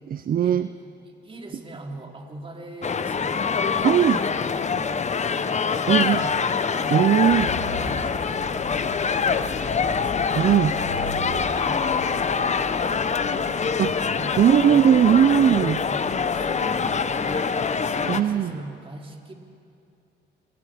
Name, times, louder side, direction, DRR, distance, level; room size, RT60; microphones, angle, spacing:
voice 1, 0.1-0.7 3.8-4.2 5.9-6.2 6.9-7.5 10.4-10.7 13.8-14.0 14.4-15.8 18.1-18.6, right 9 dB, 45° right, 13 dB, 0.5 m, -19 dB
voice 2, 1.0-6.3 6.7-7.5 7.8-13.9 14.1-14.4 14.7-14.8 15.6-19.3, right 1 dB, 25° right, 1 dB, 3.3 m, -42 dB
sound 1, 2.8-18.2, left 5 dB, 35° left, 0.9 m, -25 dB
sound 2, 7.3-17.4, left 2 dB, 90° left, 5.5 m, -40 dB
29.5 x 20.0 x 5.0 m, 2.5 s
cardioid pair, 90°, 20 cm